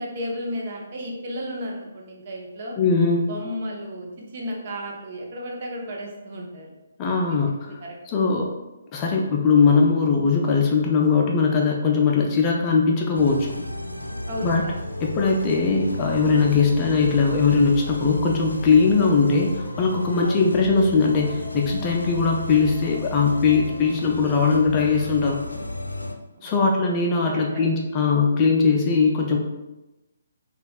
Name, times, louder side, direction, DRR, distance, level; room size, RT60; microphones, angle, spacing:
voice 1, 0.0-2.8 3.3-6.7 7.0-7.4 7.7-7.9 14.3-14.7 20.2-20.5 26.4-26.7 27.3-27.7, equal, 40° right, -1 dB, 0.7 m, -34 dB
voice 2, 2.8-3.3 7.0-7.8 8.1-8.5 8.9-13.5 14.4-14.6 15.0-25.4 26.4-29.4, left 4 dB, 25° left, 0 dB, 0.4 m, -20 dB
sound 1, 13.1-26.2, left 1 dB, 85° left, 0.4 m, -33 dB
5.1 x 2.4 x 2.3 m, 1.0 s
figure-of-eight pair, 140°, 0 cm